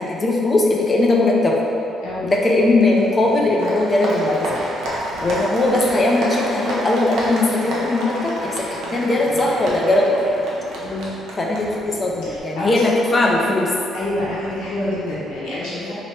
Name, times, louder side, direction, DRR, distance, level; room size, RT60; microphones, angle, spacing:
voice 1, 0.0-1.6 2.2-4.6 5.2-10.2 11.4-13.7, left 2 dB, 30° left, -2 dB, 0.6 m, -19 dB
Applause, 2.3-12.4, right 1 dB, 75° right, 0.8 m, -30 dB
voice 2, 12.2-12.8 13.9-15.9, left 1 dB, 85° left, -8 dB, 0.9 m, -27 dB
3.0 x 3.0 x 4.4 m, 2.8 s
cardioid pair, 90°, 0 cm